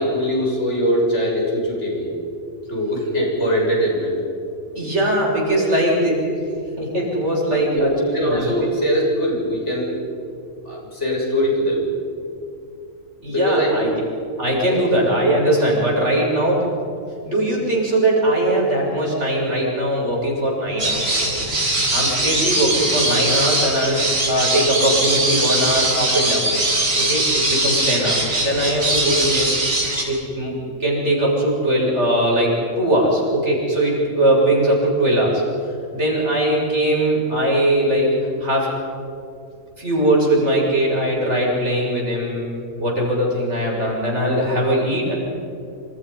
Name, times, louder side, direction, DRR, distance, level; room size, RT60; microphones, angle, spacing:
voice 1, 0.0-2.1 2.7-4.2 4.7-4.9 5.6-5.7 7.5-10.0 10.7-11.8 13.2-13.9 14.6-14.8, equal, 60° left, -2 dB, 7.1 m, -22 dB
voice 2, 4.8-6.1 6.8-7.9 8.3-8.7 13.2-13.9 14.4-16.7 17.2-21.4 21.7-26.5 27.0-29.5 30.1-35.4 35.9-38.1 38.4-38.7 39.8-42.5 42.8-45.1, right 1 dB, 60° right, -2 dB, 7.3 m, -20 dB
sound 1, 20.8-30.0, right 2 dB, 90° right, 4.6 m, -21 dB
27.0 x 27.0 x 5.7 m, 2.6 s
omnidirectional pair, 1.4 m